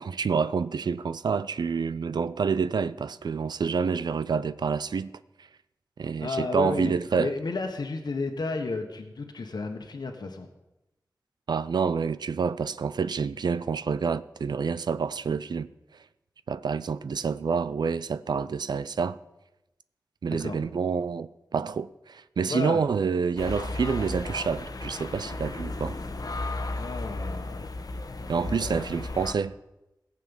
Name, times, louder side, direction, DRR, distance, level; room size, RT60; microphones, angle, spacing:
voice 1, 0.0-5.1 6.0-7.3 11.5-15.7 16.5-19.2 20.2-26.0 28.3-29.5, right 5 dB, 90° right, 0.4 m, -28 dB
voice 2, 6.2-6.9 7.2-10.5 20.3-20.6 22.5-22.8 23.7-23.8 26.8-27.7 28.4-29.0, left 3 dB, 80° left, 1.3 m, -33 dB
sound 1, 23.4-29.3, left 2 dB, 60° left, 1.1 m, -34 dB
17.0 x 7.5 x 7.2 m
wide cardioid pair, 60°, 7 cm